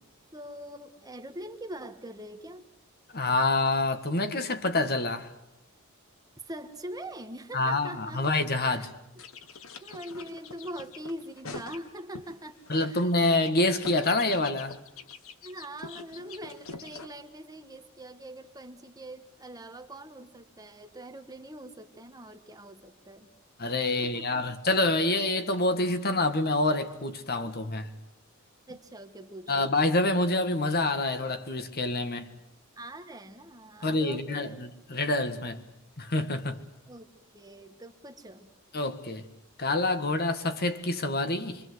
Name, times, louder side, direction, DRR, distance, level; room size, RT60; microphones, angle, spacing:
voice 1, 0.3-2.7 6.5-8.3 8.7-9.2 9.8-13.1 15.4-23.3 24.0-24.5 26.2-26.3 28.7-29.7 32.8-34.7 36.9-38.5, right 1 dB, 15° right, 1.6 m, -43 dB
voice 2, 3.1-5.3 7.5-8.9 12.7-14.8 23.6-27.9 29.5-32.3 33.8-35.6 36.0-36.6 38.7-39.2 39.6-41.6, left 2 dB, 45° left, 1.8 m, -27 dB
sound 1, 9.2-12.3 12.7-17.1, left 4 dB, 70° left, 1.5 m, -44 dB
26.5 x 24.0 x 8.0 m
head